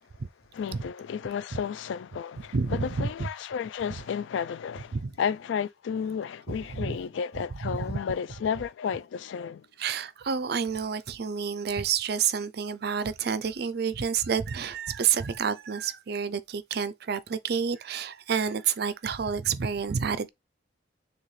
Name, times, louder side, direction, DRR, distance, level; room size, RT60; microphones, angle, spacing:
voice 1, 0.5-9.6, left 7 dB, 75° left, 0.3 m, -32 dB
voice 2, 2.5-3.3 4.9-5.1 6.5-7.0 7.6-8.0 9.8-20.3, right 6 dB, 55° right, 0.5 m, -29 dB
6.5 x 2.3 x 3.2 m
head